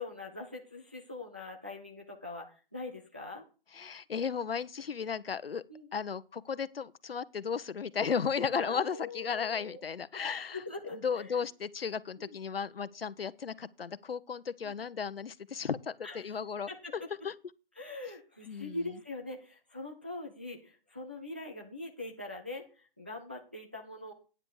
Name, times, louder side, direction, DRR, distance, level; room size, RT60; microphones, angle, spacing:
voice 1, 0.0-3.4 5.7-5.9 8.5-9.8 10.1-10.2 10.5-11.4 12.3-12.4 14.6-14.7 16.0-16.4 16.7-17.1 17.8-24.1, left 2 dB, 10° right, 0.5 m, -42 dB
voice 2, 3.7-5.6 5.9-10.6 11.0-16.7 17.2-17.3 18.5-18.8, left 6 dB, 80° left, 0.9 m, -35 dB
9.7 x 7.7 x 4.7 m
hypercardioid pair, 175°, 29 cm